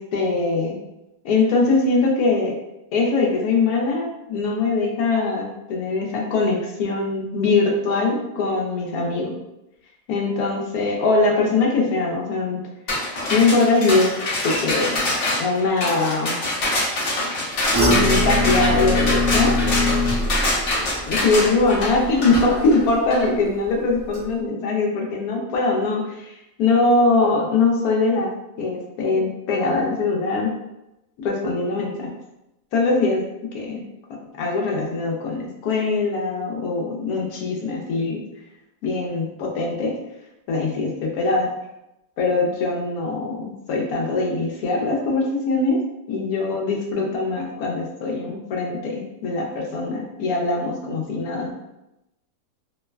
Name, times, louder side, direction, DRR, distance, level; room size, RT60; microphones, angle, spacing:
voice 1, 0.1-0.8 1.2-2.5 2.9-9.4 10.1-12.6 13.3-14.1 14.4-15.0 15.4-16.4 17.9-19.5 21.1-28.3 28.6-30.5 31.2-32.1 32.7-33.2 33.5-33.8 34.4-38.2 38.8-39.9 40.5-40.9 41.2-41.5 42.2-45.8 46.1-51.5, left 3 dB, 70° left, -1 dB, 0.9 m, -22 dB
sound 1, 12.9-23.2, left 1 dB, 90° left, 0.5 m, -24 dB
sound 2, 17.7-22.9 23.3-23.7 24.1-24.2, left 2 dB, 25° right, 0.6 m, -23 dB
3.0 x 2.1 x 2.3 m, 0.93 s
omnidirectional pair, 1.8 m